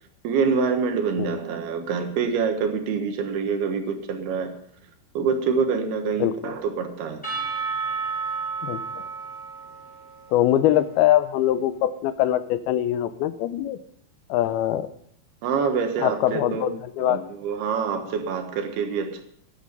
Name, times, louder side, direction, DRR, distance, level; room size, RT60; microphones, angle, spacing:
voice 1, 0.2-4.5 5.2-7.2 15.4-16.7 17.0-19.2, right 5 dB, 80° right, 6 dB, 3.4 m, -26 dB
voice 2, 6.2-6.5 8.6-8.8 10.3-13.8 14.3-14.9 16.0-17.2, left 12 dB, 80° left, 13 dB, 2.5 m, -23 dB
Percussion / Church bell, 7.2-11.2, right 5 dB, ahead, 7.2 m, -32 dB
14.0 x 10.5 x 5.4 m, 0.66 s
omnidirectional pair, 4.5 m